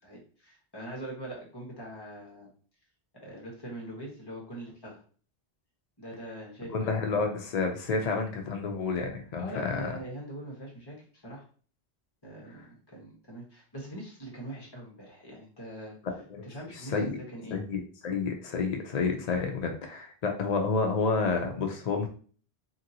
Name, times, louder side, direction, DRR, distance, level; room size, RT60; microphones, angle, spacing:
voice 1, 0.0-2.5 3.2-5.0 6.0-7.0 9.4-11.4 12.2-16.0 16.4-17.6, right 1 dB, 25° left, -3 dB, 1.1 m, -42 dB
voice 2, 6.7-9.9 16.3-16.4 16.9-17.2 17.5-22.1, left 4 dB, 50° left, 3 dB, 0.5 m, -29 dB
2.9 x 2.7 x 2.7 m, 0.42 s
omnidirectional pair, 1.1 m